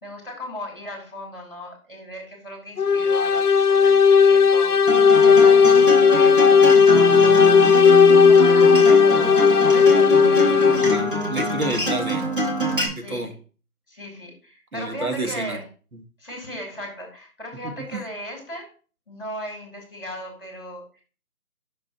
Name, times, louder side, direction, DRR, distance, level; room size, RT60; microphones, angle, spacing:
voice 1, 0.0-4.8 5.2-11.0 13.0-13.3 13.9-15.7 16.2-18.7 19.1-21.0, equal, 35° left, 1 dB, 2.3 m, -37 dB
sound 1, 2.8-11.2, left 6 dB, 85° left, 0.7 m, -15 dB
Acoustic guitar, 4.9-12.9, right 2 dB, 35° right, 1.4 m, -25 dB
voice 2, 6.9-7.5 10.5-12.3 12.6-13.4 14.7-15.6 15.9-16.0 17.6-18.0, right 2 dB, 70° right, 6 dB, 1.3 m, -31 dB
6.1 x 3.8 x 5.5 m, 0.38 s
figure-of-eight pair, 180°, 45 cm